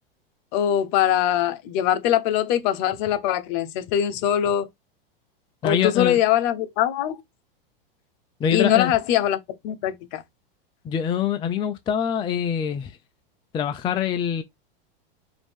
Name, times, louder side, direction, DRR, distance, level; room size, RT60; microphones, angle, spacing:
voice 1, 0.5-4.7 5.6-7.2 8.5-9.4 9.6-10.2, left 11 dB, 50° left, 0.8 m, -22 dB
voice 2, 5.6-6.2 8.4-8.9 10.8-13.0 13.5-14.4, left 9 dB, 15° left, 0.4 m, -24 dB
4.9 x 2.7 x 3.5 m
hypercardioid pair, 115°, 29 cm